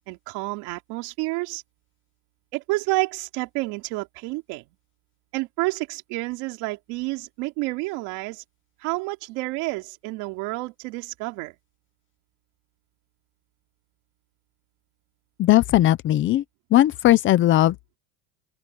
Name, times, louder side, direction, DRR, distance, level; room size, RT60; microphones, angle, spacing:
voice 1, 0.1-1.6 2.5-4.6 5.3-8.4 8.8-11.5, right 23 dB, 55° right, 3.1 m, -29 dB
voice 2, 15.4-16.4 16.7-18.0, left 14 dB, 25° left, 0.6 m, -18 dB
open air
cardioid pair, 165°, 47 cm